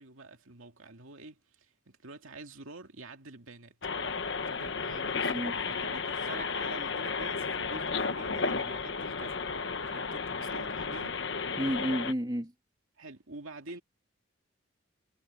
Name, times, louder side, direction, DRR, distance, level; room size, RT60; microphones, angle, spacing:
voice 1, 0.0-1.4 1.9-3.8 4.5-9.4 9.8-11.2 13.0-13.8, right 2 dB, 90° right, 2.4 m, -47 dB
sound 1, 3.8-12.1, left 4 dB, 60° left, 1.2 m, -33 dB
voice 2, 11.6-12.5, equal, 20° right, 2.4 m, -31 dB
head